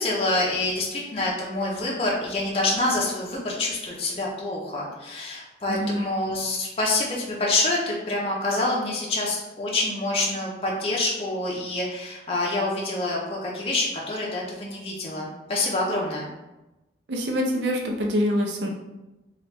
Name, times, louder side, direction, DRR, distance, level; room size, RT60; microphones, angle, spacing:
voice 1, 0.0-16.3, left 2 dB, 35° left, -4 dB, 0.5 m, -26 dB
voice 2, 5.7-6.0 17.1-18.7, equal, 85° right, 1 dB, 0.5 m, -25 dB
2.9 x 2.4 x 3.3 m, 1.0 s
head